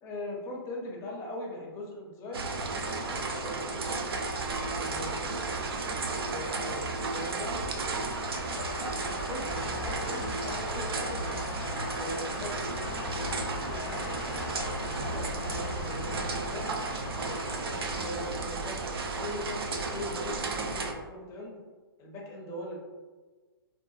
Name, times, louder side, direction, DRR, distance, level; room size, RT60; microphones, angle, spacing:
voice 1, 0.0-4.0 4.5-5.8 6.2-7.6 8.6-11.2 11.9-16.7 17.1-18.8 19.1-21.6 22.0-22.8, left 1 dB, 25° left, -1 dB, 0.5 m, -41 dB
sound 1, 2.3-20.9, right 3 dB, 75° right, 0.4 m, -34 dB
sound 2, 4.2-20.8, left 2 dB, 70° left, 0.5 m, -41 dB
2.7 x 2.3 x 2.4 m, 1.3 s
hypercardioid pair, 130°, 13 cm